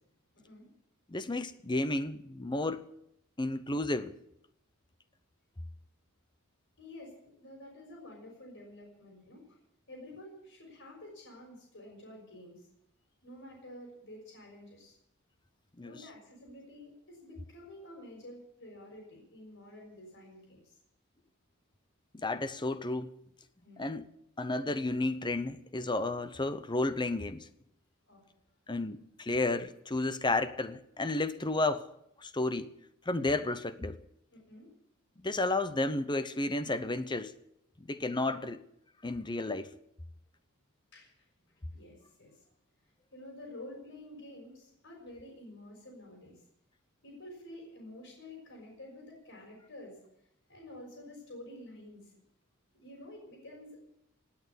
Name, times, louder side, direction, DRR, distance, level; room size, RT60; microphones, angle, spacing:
voice 1, 1.1-2.9 3.4-4.2 15.8-16.0 22.1-23.1 23.8-24.1 24.4-27.5 28.7-31.9 32.2-32.7 33.1-34.0 35.2-37.3 37.8-38.6 39.0-39.7, left 2 dB, 20° left, 0.8 m, -32 dB
voice 2, 6.8-9.6 9.9-12.6 13.2-15.0 15.8-20.8 23.6-23.8 28.1-28.4 34.3-34.7 40.9-41.1 41.7-42.4 43.1-46.4 47.0-50.0 50.5-52.1 52.7-53.8, left 1 dB, 60° left, 6.3 m, -50 dB
18.5 x 8.7 x 8.3 m
head